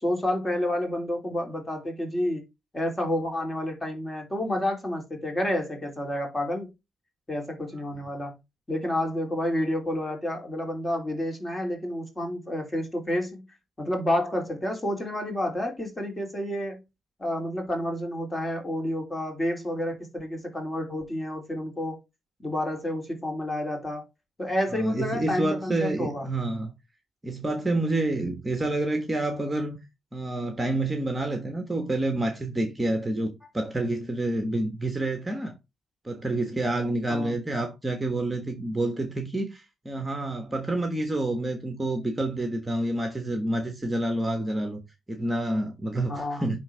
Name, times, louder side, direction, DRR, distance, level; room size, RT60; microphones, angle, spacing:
voice 1, 0.0-2.4 2.7-6.7 7.3-8.4 8.7-13.4 13.8-16.8 17.2-22.0 22.4-24.0 24.4-26.3 37.1-37.4 46.1-46.5, left 1 dB, 20° left, 3.0 m, -29 dB
voice 2, 24.7-26.7 27.2-29.8 30.1-35.5 36.0-44.8 45.1-46.6, right 2 dB, 15° right, 1.3 m, -28 dB
10.0 x 3.7 x 3.4 m
cardioid pair, 90°, 0 cm